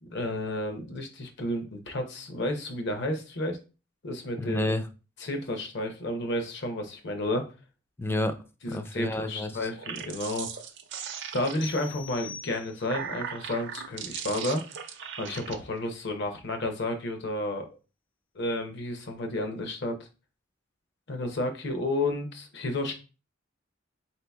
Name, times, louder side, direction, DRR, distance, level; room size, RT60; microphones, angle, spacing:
voice 1, 0.0-3.6 4.0-4.7 5.2-7.5 8.6-10.5 11.3-14.6 15.2-17.7 18.3-20.0 21.1-22.9, left 1 dB, 60° left, 5 dB, 0.8 m, -31 dB
voice 2, 4.4-4.9 8.0-8.4 8.7-9.7, left 1 dB, 10° left, 9 dB, 0.3 m, -30 dB
sound 1, 9.7-11.9 12.6-15.6, right 8 dB, 60° right, 0.5 m, -38 dB
sound 2, 11.6-13.1, left 6 dB, 80° left, 1.1 m, -43 dB
4.0 x 2.8 x 3.4 m, 0.32 s
head